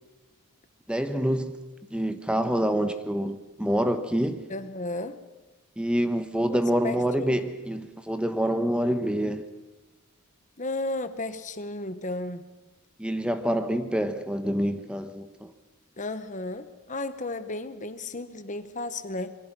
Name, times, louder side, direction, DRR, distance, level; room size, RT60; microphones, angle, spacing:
voice 1, 0.9-1.6 1.9-4.4 5.8-9.5 13.0-15.5, equal, 5° right, 1.0 m, -26 dB
voice 2, 4.5-5.2 6.5-6.6 6.8-7.4 10.6-12.5 16.0-19.4, left 2 dB, 35° left, 1.1 m, -34 dB
26.5 x 23.0 x 6.1 m
head